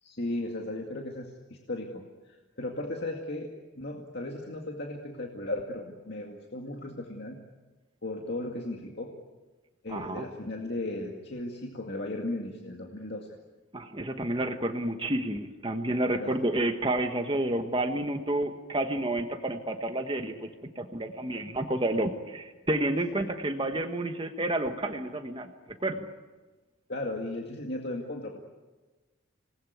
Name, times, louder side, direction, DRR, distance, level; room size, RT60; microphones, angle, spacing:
voice 1, 0.0-3.5 3.8-7.4 8.0-9.1 9.8-13.3 16.1-16.3 26.9-28.4, left 1 dB, 50° left, 1 dB, 2.2 m, -36 dB
voice 2, 9.9-10.3 13.7-26.1, right 1 dB, 25° right, 6 dB, 1.3 m, -30 dB
26.5 x 20.0 x 9.4 m, 1.2 s
head